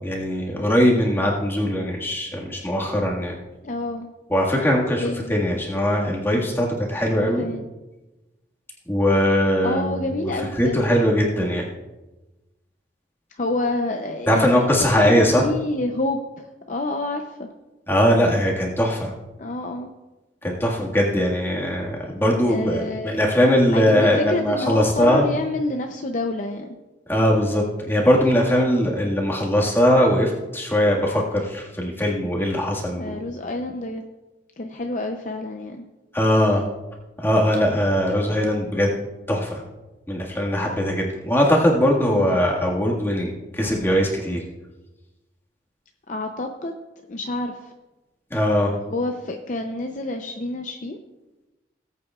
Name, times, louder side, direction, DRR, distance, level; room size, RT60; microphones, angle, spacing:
voice 1, 0.0-3.4 4.3-7.5 8.9-10.3 10.6-11.7 14.3-15.4 17.9-19.1 20.4-25.3 27.1-33.2 36.1-36.6 37.2-38.9 39.3-39.6 40.1-44.4 48.3-48.7, equal, 15° left, -3 dB, 1.7 m, -20 dB
voice 2, 3.6-4.1 5.0-5.4 7.1-7.6 9.6-10.9 13.3-14.7 15.0-17.5 19.4-19.9 22.5-23.2 23.7-26.8 33.0-34.0 34.6-35.9 42.1-42.4 46.1-46.7 47.1-47.7 48.9-51.0, left 2 dB, 45° left, 4 dB, 0.6 m, -28 dB
19.0 x 8.4 x 2.4 m, 1.1 s
head